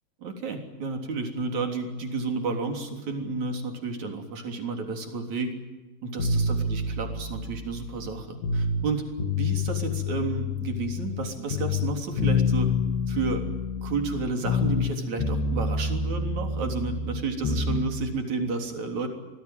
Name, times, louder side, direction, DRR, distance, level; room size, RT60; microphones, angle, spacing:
voice 1, 0.2-5.5 6.0-9.1 9.3-12.7 13.1-13.5 13.8-19.1, right 4 dB, 45° right, 4 dB, 4.5 m, -31 dB
sound 1, 6.2-8.9 9.2-11.2 11.5-14.9 15.2-17.8, left 3 dB, 85° left, 4.8 m, -27 dB
27.5 x 19.5 x 9.3 m, 1.2 s
omnidirectional pair, 4.6 m